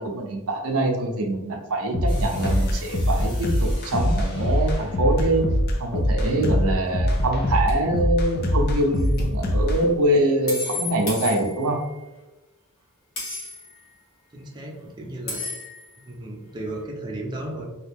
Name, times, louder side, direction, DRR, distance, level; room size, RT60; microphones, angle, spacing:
voice 1, 0.0-5.5 5.8-11.8, right 1 dB, 80° right, 2 dB, 0.6 m, -24 dB
sound 1, 1.9-9.8, equal, 45° left, 0.4 m, -23 dB
sound 2, 2.1-6.9, left 1 dB, 20° left, 0.9 m, -46 dB
sound 3, 9.0-9.1 10.5-11.9 13.2-13.8 15.3-16.0, left 3 dB, 70° left, 1.3 m, -33 dB
voice 2, 14.3-15.4 16.0-17.6, right 1 dB, 20° right, -2 dB, 0.5 m, -34 dB
2.8 x 2.3 x 3.4 m, 1.1 s
head